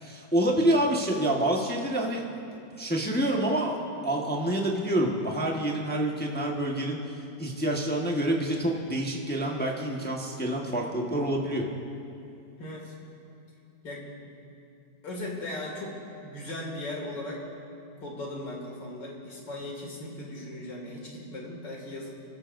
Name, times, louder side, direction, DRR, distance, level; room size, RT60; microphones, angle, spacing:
voice 1, 0.0-2.2 2.8-3.8 4.0-7.0 7.4-11.6, right 1 dB, 5° left, -1 dB, 1.1 m, -27 dB
voice 2, 12.6-12.9 13.8-14.2 15.0-17.4 18.0-22.1, left 1 dB, 70° left, -2 dB, 3.0 m, -38 dB
28.0 x 14.0 x 2.6 m, 2.7 s
omnidirectional pair, 2.0 m